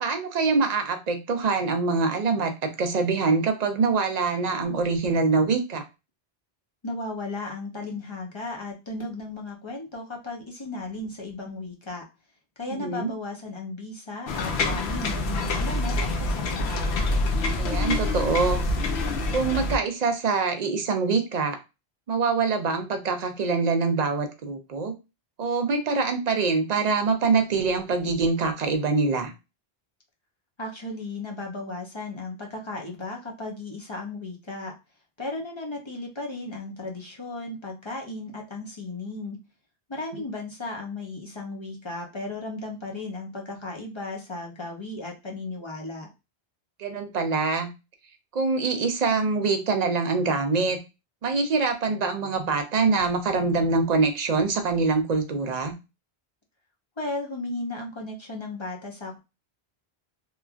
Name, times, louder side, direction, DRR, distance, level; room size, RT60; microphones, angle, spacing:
voice 1, 0.0-5.8 12.8-13.1 17.5-18.6 19.3-21.6 22.1-24.9 25.4-29.3 46.8-47.7 48.3-50.8 51.2-55.7, right 4 dB, 55° right, 6 dB, 0.5 m, -24 dB
voice 2, 6.8-12.0 12.6-17.0 30.6-34.7 35.2-39.4 39.9-46.1 57.0-59.2, left 2 dB, 35° left, 0 dB, 0.5 m, -35 dB
Shroud-wind-wistles, 14.3-19.8, left 2 dB, 80° left, 0.8 m, -26 dB
3.0 x 2.3 x 2.3 m, 0.27 s
omnidirectional pair, 1.1 m